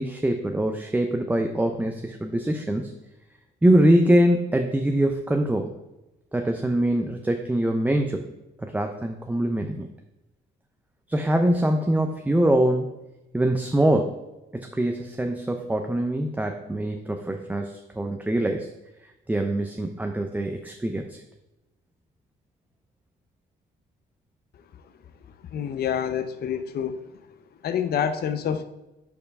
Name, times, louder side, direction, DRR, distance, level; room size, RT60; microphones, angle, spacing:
voice 1, 0.0-2.9 3.6-5.7 6.3-8.3 8.6-9.9 11.1-12.9 13.3-14.1 14.5-18.7 19.3-21.2, right 1 dB, 10° right, 4 dB, 0.5 m, -23 dB
voice 2, 25.5-27.0 27.6-28.6, left 8 dB, 50° left, 10 dB, 0.5 m, -27 dB
5.6 x 4.4 x 5.3 m, 0.98 s
cardioid pair, 90°, 20 cm